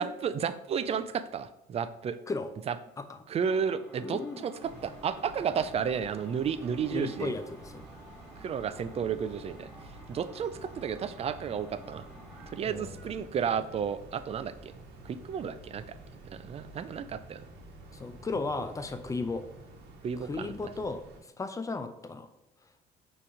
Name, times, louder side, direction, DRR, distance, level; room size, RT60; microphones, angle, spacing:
voice 1, 0.0-2.2 2.7-2.8 3.3-7.3 8.4-9.7 10.1-12.0 12.5-14.7 15.1-15.8 16.3-17.4 20.0-20.5, right 7 dB, 35° right, 12 dB, 0.4 m, -32 dB
sound 1, 3.4-12.6, equal, ahead, 1.5 m, -52 dB
voice 2, 4.0-4.4 6.9-7.8 12.6-13.1 17.9-19.4 20.2-21.0 21.4-22.3, left 3 dB, 20° left, 9 dB, 0.6 m, -35 dB
sound 2, 4.6-21.2, right 2 dB, 80° right, 1.2 m, -50 dB
6.0 x 3.2 x 4.9 m, 0.86 s
cardioid pair, 110°, 17 cm